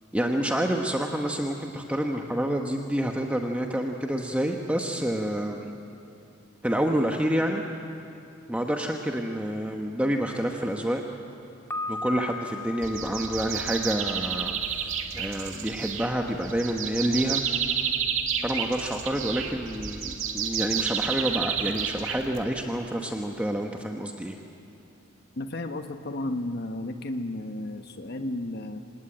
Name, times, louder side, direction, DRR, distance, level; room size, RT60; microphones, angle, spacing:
voice 1, 0.1-5.7 6.6-7.6 8.5-11.0 11.9-17.4 18.4-24.4, right 1 dB, 5° right, 2 dB, 1.1 m, -28 dB
Piano, 11.7-14.6, left 3 dB, 15° left, 1.5 m, -37 dB
sound 1, 12.8-22.6, right 7 dB, 75° right, 2.1 m, -30 dB
voice 2, 25.4-28.8, left 1 dB, 55° left, 7 dB, 1.2 m, -33 dB
27.0 x 18.5 x 8.8 m, 2.7 s
head